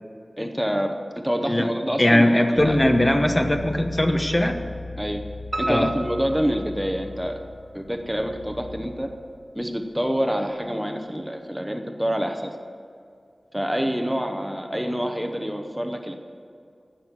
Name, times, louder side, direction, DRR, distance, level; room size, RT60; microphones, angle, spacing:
voice 1, 0.4-2.8 5.0-5.2 5.6-7.4 7.7-9.1 9.5-12.5 13.5-16.1, equal, 5° right, 5 dB, 0.9 m, -27 dB
voice 2, 2.0-4.6 5.7-5.9, left 1 dB, 25° left, 5 dB, 1.1 m, -20 dB
Bass guitar, 2.6-8.8, left 3 dB, 85° left, 1.9 m, -37 dB
Piano, 5.5-7.4 7.9-8.7 9.1-9.2 9.6-9.7 10.0-10.1, right 2 dB, 55° right, 1.6 m, -33 dB
16.0 x 6.2 x 8.9 m, 2.5 s
wide cardioid pair, 80°, 0 cm